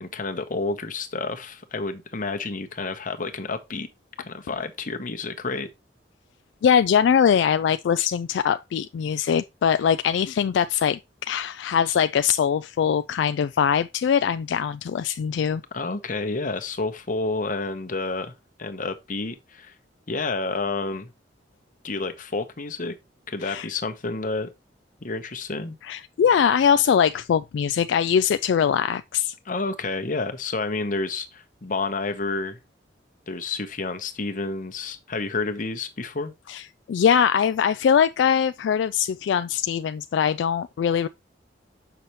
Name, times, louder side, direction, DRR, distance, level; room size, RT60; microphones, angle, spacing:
voice 1, 0.0-3.9 4.2-5.7 15.7-18.3 18.6-19.7 20.1-21.1 21.8-22.9 23.3-24.5 25.0-25.8 29.4-32.6 33.3-36.3, left 3 dB, 45° left, 1.0 m, -29 dB
voice 2, 6.6-15.6 23.4-23.7 25.8-29.3 36.5-41.1, left 7 dB, 75° left, 0.3 m, -22 dB
6.9 x 5.7 x 3.1 m
head